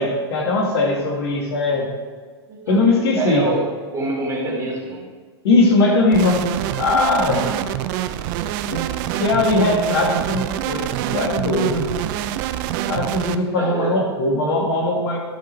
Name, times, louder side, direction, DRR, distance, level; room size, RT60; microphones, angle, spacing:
voice 1, 0.0-1.9 2.7-3.5 5.4-6.5 6.7-7.4 8.7-8.9 9.1-11.9 12.9-15.2, left 2 dB, 65° left, 0 dB, 1.9 m, -19 dB
voice 2, 2.5-3.7 3.9-5.0 7.1-8.8 13.5-14.0, right 2 dB, 20° right, -2 dB, 2.8 m, -27 dB
sound 1, 6.1-13.4, right 12 dB, 45° right, 0.5 m, -26 dB
12.5 x 5.0 x 4.5 m, 1.5 s
hypercardioid pair, 100°, 14 cm